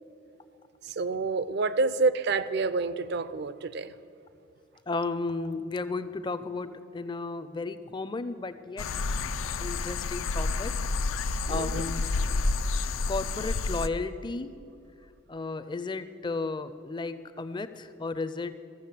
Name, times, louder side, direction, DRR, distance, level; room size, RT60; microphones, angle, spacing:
voice 1, 0.8-3.9 11.5-11.9, right 3 dB, 55° right, 15 dB, 0.4 m, -28 dB
voice 2, 4.9-8.9 9.6-10.7 11.1-12.1 13.1-14.5 15.3-18.5, left 3 dB, 25° left, 12 dB, 0.4 m, -34 dB
sound 1, 8.8-13.9, left 3 dB, 90° left, 0.5 m, -29 dB
14.5 x 7.2 x 7.4 m, 2.6 s
head